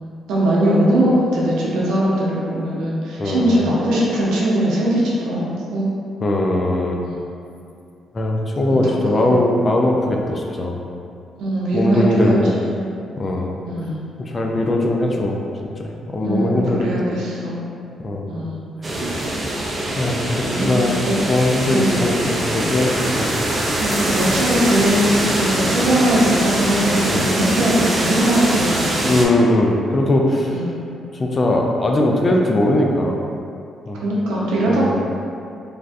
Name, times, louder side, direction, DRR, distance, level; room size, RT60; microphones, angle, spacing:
voice 1, 0.3-5.9 7.0-7.1 8.7-9.4 11.4-12.8 13.7-14.1 16.2-17.6 18.3-18.6 20.4-21.1 21.7-22.1 23.8-29.1 30.5-30.8 34.0-34.9, right 1 dB, 85° right, -5 dB, 0.6 m, -20 dB
voice 2, 3.2-3.6 6.2-7.0 8.1-10.8 11.7-12.5 13.2-13.5 14.2-15.4 15.8-16.9 18.0-18.3 18.9-19.0 19.9-21.0 21.3-23.3 27.1-27.3 29.0-30.6 31.1-33.2 33.9-34.0 34.7-34.9, left 1 dB, 30° left, 0 dB, 0.4 m, -20 dB
sound 1, 18.8-29.3, right 1 dB, 30° right, 0.4 m, -22 dB
3.3 x 2.5 x 2.4 m, 2.5 s
cardioid pair, 90°, 0 cm